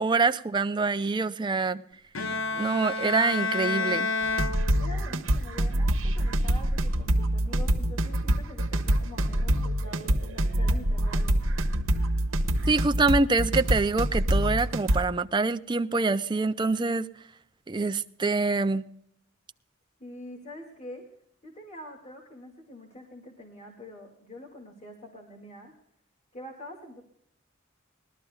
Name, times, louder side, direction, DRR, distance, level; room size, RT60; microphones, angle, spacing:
voice 1, 0.0-1.8 2.5-4.1 12.7-17.1 17.7-18.9, right 3 dB, 25° right, 0.5 m, -25 dB
Bowed string instrument, 2.1-5.3, left 3 dB, 75° left, 0.9 m, -30 dB
sound 1, 4.2-15.0, right 1 dB, 85° right, 1.2 m, -25 dB
voice 2, 4.8-11.8 20.0-21.1 21.4-25.7 26.3-27.0, left 1 dB, 35° left, 2.3 m, -45 dB
21.0 x 13.0 x 2.4 m
head